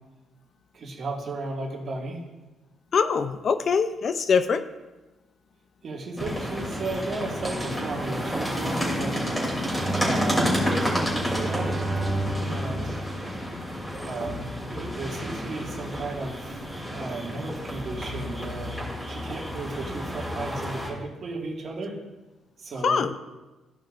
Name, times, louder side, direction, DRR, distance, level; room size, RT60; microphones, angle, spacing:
voice 1, 0.7-2.2 5.8-9.2 9.9-11.7 12.4-13.0 13.9-18.8 19.1-22.0 22.6-23.1, right 3 dB, 50° right, -1 dB, 2.0 m, -34 dB
voice 2, 2.9-4.6 22.8-23.1, left 5 dB, 50° left, 10 dB, 0.5 m, -23 dB
sound 1, 6.2-20.9, equal, 10° left, 3.0 m, -30 dB
Bowed string instrument, 9.7-14.1, right 2 dB, 10° right, 2.9 m, -32 dB
14.5 x 5.5 x 2.6 m, 1.1 s
cardioid pair, 90°, 0 cm